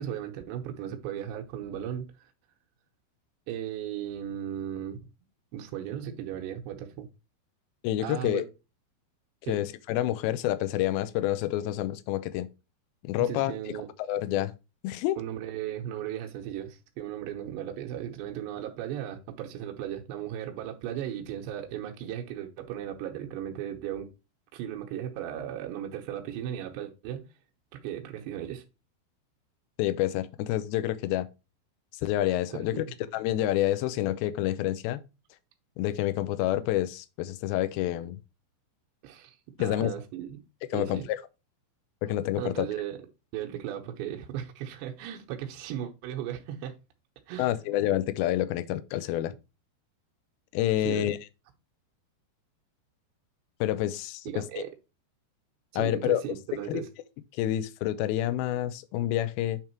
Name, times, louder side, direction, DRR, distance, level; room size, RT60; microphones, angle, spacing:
voice 1, 0.0-2.3 3.5-5.1 5.5-7.1 8.0-8.4 9.5-9.6 13.2-13.9 15.2-24.1 24.5-27.2 27.7-28.6 32.5-32.9 39.0-40.4 40.7-41.1 42.4-43.0 43.3-46.7 47.3-47.5 50.8-51.1 54.3-54.7 55.7-56.9, right 10 dB, 80° right, 3.0 m, -36 dB
voice 2, 7.8-8.4 9.5-12.5 13.0-13.5 14.1-14.5 14.8-15.2 29.8-31.3 32.0-32.8 33.1-35.0 35.8-38.2 39.6-39.9 40.7-41.2 42.0-42.7 47.4-49.3 50.5-51.2 53.6-54.6 55.8-56.2 56.7-56.8 57.3-59.6, left 13 dB, 80° left, 2.2 m, -28 dB
8.9 x 3.6 x 4.4 m
omnidirectional pair, 5.0 m